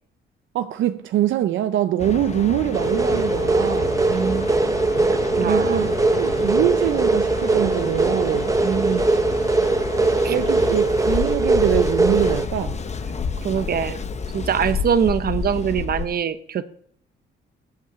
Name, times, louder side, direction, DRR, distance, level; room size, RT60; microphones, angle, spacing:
voice 1, 0.5-4.0 5.4-8.5 10.3-12.8, right 12 dB, 75° right, 0.6 m, -23 dB
Mechanical fan, 2.0-16.1, left 5 dB, 35° left, 0.9 m, -30 dB
sound 1, 2.7-12.5, right 3 dB, 15° right, 0.8 m, -21 dB
voice 2, 4.1-4.5 5.1-5.9 8.6-9.0 10.2-10.4 13.4-14.0 14.3-16.6, right 7 dB, 50° right, 0.9 m, -23 dB
8.4 x 8.3 x 7.9 m
cardioid pair, 90°, 20 cm